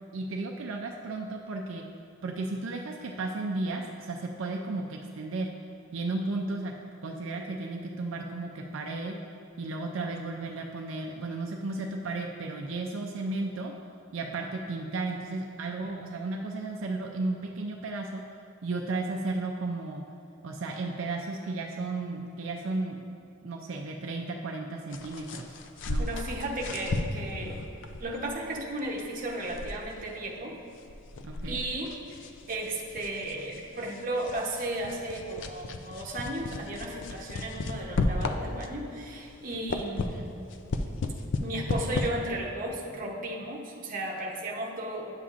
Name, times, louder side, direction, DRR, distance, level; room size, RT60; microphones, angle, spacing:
voice 1, 0.1-1.8 2.2-5.5 5.9-6.7 7.0-9.2 9.6-13.7 14.1-18.2 18.6-20.0 20.4-23.0 23.4-25.5 25.9-26.0 31.2-31.6, right 2 dB, 70° right, 0 dB, 0.4 m, -34 dB
sound 1, 24.9-38.9 39.3-42.1, left 2 dB, 60° left, 0.4 m, -35 dB
voice 2, 26.0-27.6 28.0-30.6 31.4-31.9 32.5-40.4 41.4-45.2, right 1 dB, 40° right, -1 dB, 0.8 m, -34 dB
9.7 x 7.0 x 2.5 m, 2.5 s
head